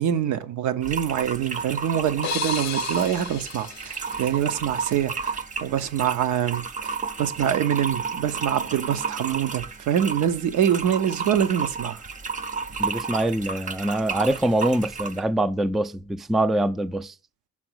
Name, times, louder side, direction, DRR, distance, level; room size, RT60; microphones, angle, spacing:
voice 1, 0.0-12.0, right 9 dB, 75° right, 0.8 m, -25 dB
sound 1, 0.8-15.2, right 5 dB, 25° right, 0.7 m, -32 dB
sound 2, 2.2-5.0, left 13 dB, 65° left, 0.5 m, -35 dB
voice 2, 12.8-17.2, right 1 dB, ahead, 0.3 m, -24 dB
6.0 x 3.9 x 6.2 m
cardioid pair, 90°, 30 cm